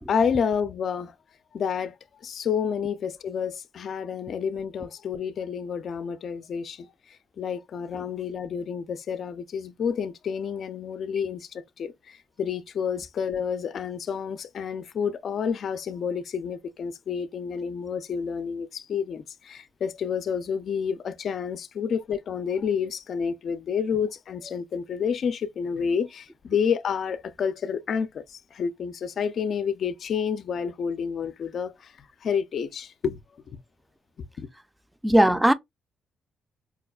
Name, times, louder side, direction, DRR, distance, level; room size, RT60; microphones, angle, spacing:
voice 1, 0.1-1.2 1.5-2.0 2.2-31.9 32.2-33.2 34.4-34.5, left 7 dB, 60° left, 0.4 m, -29 dB
voice 2, 35.0-35.5, right 1 dB, 5° right, 0.4 m, -18 dB
4.7 x 2.2 x 2.2 m
cardioid pair, 90°, 0 cm